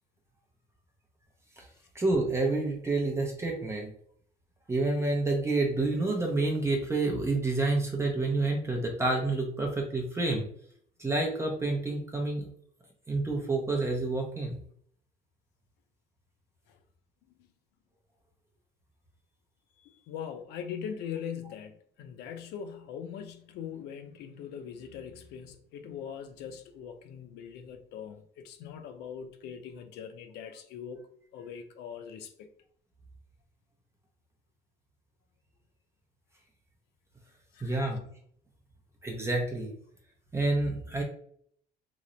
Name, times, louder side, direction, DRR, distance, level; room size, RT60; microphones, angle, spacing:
voice 1, 1.9-3.9 4.7-10.4 11.0-12.5 13.1-14.6 37.6-38.0 39.0-39.7 40.3-41.0, right 2 dB, 15° right, 0 dB, 0.6 m, -28 dB
voice 2, 19.8-31.0 31.3-32.5 37.5-37.8, left 8 dB, 85° left, 7 dB, 0.5 m, -41 dB
3.0 x 2.0 x 3.8 m, 0.63 s
cardioid pair, 110°, 17 cm